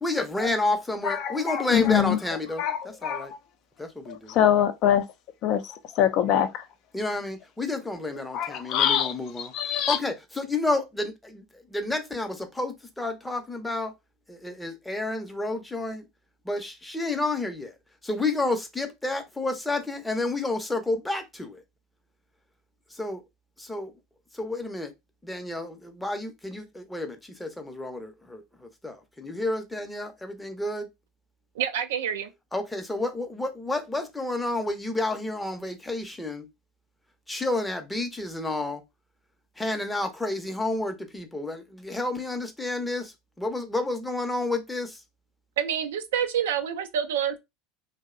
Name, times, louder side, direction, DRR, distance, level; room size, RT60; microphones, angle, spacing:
voice 1, 0.0-3.3 3.8-4.4 6.9-11.4 11.7-13.9 14.3-16.1 16.4-17.7 18.0-21.6 22.9-23.2 23.6-23.9 24.3-24.9 25.2-30.9 32.5-36.5 37.3-38.8 39.6-45.0, left 2 dB, 10° left, 0.6 m, -30 dB
voice 2, 1.0-2.2 2.6-3.3 4.1-5.0 5.4-6.6 8.3-9.1 9.5-10.0, left 10 dB, 55° left, 0.4 m, -24 dB
voice 3, 31.5-32.3 45.6-47.4, right 9 dB, 80° right, 0.4 m, -27 dB
2.6 x 2.0 x 2.4 m
hypercardioid pair, 85°, 0 cm